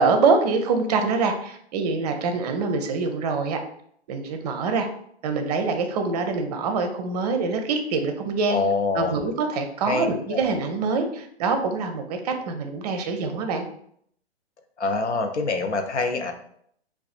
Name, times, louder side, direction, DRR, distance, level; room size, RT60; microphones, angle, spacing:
voice 1, 0.0-3.6 4.1-4.9 5.2-8.6 8.9-13.6, right 4 dB, 35° right, 6 dB, 0.5 m, -24 dB
voice 2, 8.5-9.2 9.9-10.4 14.8-16.3, left 3 dB, 85° left, 5 dB, 0.6 m, -25 dB
4.7 x 2.4 x 2.4 m, 0.67 s
figure-of-eight pair, 125°, 33 cm